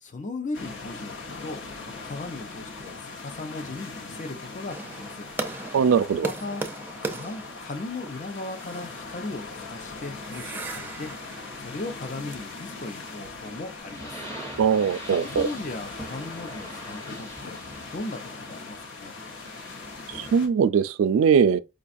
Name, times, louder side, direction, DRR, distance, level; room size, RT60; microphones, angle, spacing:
voice 1, 0.0-1.6 2.0-5.3 6.2-6.6 7.0-11.1 11.6-14.2 15.1-17.6 17.9-19.2, left 2 dB, 40° left, 0.7 m, -37 dB
sound 1, 0.5-20.5, left 3 dB, 70° left, 1.0 m, -40 dB
sound 2, 4.7-13.8, right 3 dB, 10° right, 0.5 m, -39 dB
voice 2, 5.7-6.3 14.6-15.5 20.1-21.6, right 6 dB, 80° right, 0.3 m, -21 dB
sound 3, 13.7-20.4, right 1 dB, 15° left, 1.0 m, -43 dB
5.0 x 2.3 x 2.5 m
head